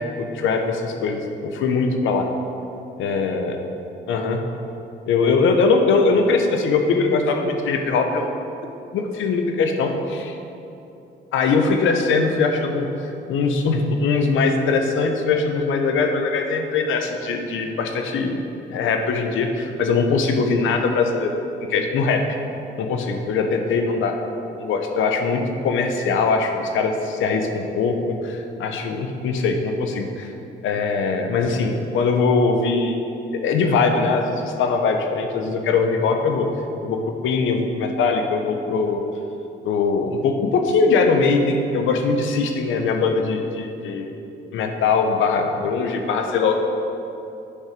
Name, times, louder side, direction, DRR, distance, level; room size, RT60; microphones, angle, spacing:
voice 1, 0.3-2.3 3.0-3.5 4.1-4.4 5.1-8.3 8.9-10.4 11.3-18.4 18.7-21.3 21.7-22.2 22.8-24.2 24.6-30.3 30.6-33.0 33.3-36.5 36.8-39.0 39.6-44.1 44.5-46.6, left 4 dB, 80° left, 4 dB, 0.9 m, -21 dB
8.4 x 5.5 x 5.2 m, 2.8 s
cardioid pair, 90°, 20 cm